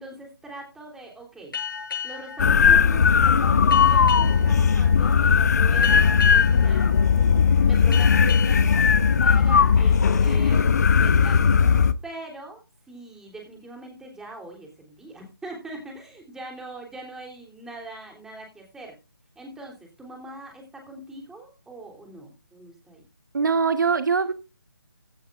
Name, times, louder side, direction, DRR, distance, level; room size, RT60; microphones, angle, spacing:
voice 1, 0.0-1.5 2.0-6.9 7.6-10.7 11.0-11.6 12.0-18.9 19.3-23.0, right 2 dB, 5° right, 3.4 m, -41 dB
sound 1, 1.5-10.7, left 7 dB, 65° left, 7.9 m, -36 dB
sound 2, 2.4-11.9, left 6 dB, 45° left, 0.9 m, -18 dB
voice 2, 23.3-24.3, right 5 dB, 55° right, 1.3 m, -22 dB
16.5 x 10.5 x 2.5 m
figure-of-eight pair, 155°, 12 cm